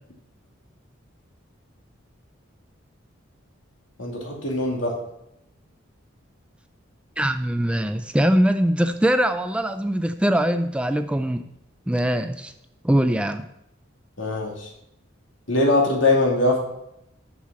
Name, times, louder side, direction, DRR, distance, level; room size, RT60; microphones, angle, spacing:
voice 1, 4.0-4.9 14.2-14.7 15.5-16.6, left 2 dB, 75° left, -1 dB, 2.6 m, -21 dB
voice 2, 7.2-11.5 11.9-12.5 12.8-13.4, right 1 dB, 5° right, 9 dB, 0.3 m, -22 dB
7.1 x 6.4 x 7.4 m, 0.81 s
head